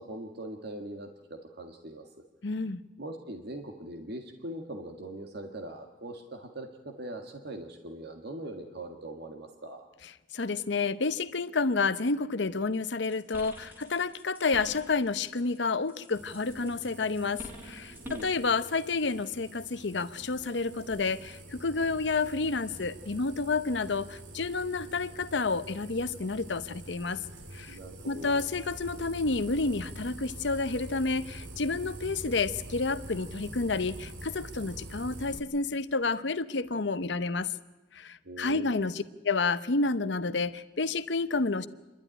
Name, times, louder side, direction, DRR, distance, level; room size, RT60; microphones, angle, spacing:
voice 1, 0.0-2.1 3.0-9.8 18.0-18.5 27.7-28.4 38.2-38.8, right 1 dB, 60° right, 4 dB, 1.7 m, -41 dB
voice 2, 2.4-2.8 10.3-27.2 27.5-27.8 28.1-37.5 38.0-41.7, left 3 dB, 65° left, 13 dB, 0.8 m, -30 dB
sound 1, 13.0-15.6 15.9-18.4, equal, 10° right, 4.1 m, -47 dB
sound 2, 16.1-35.4, right 1 dB, 80° right, 2.2 m, -45 dB
27.5 x 12.0 x 9.9 m, 1.1 s
head